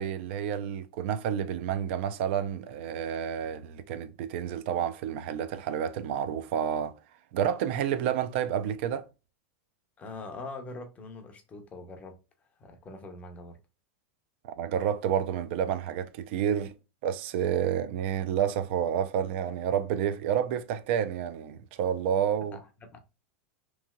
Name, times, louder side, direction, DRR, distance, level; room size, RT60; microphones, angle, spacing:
voice 1, 0.0-6.9 7.3-9.0 14.4-16.7 17.0-22.6, right 9 dB, 55° right, 0.4 m, -29 dB
voice 2, 10.0-12.2 12.6-13.6 22.5-23.0, left 3 dB, 20° left, 0.6 m, -43 dB
3.1 x 2.7 x 2.2 m
supercardioid pair, 145°, 7 cm